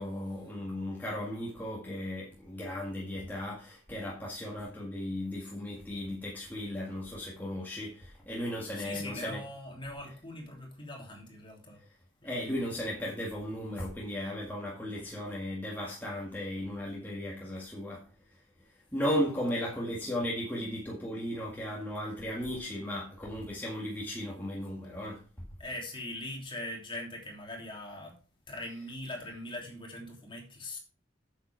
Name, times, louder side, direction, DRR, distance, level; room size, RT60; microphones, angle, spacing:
voice 1, 0.0-9.4 12.2-18.4 18.7-25.5, equal, 10° left, 1.9 m, -36 dB
voice 2, 8.7-11.8 12.2-12.4 19.5-19.6 25.6-28.1 28.5-30.8, left 1 dB, 25° left, 3.1 m, -41 dB
8.9 x 7.5 x 4.6 m
head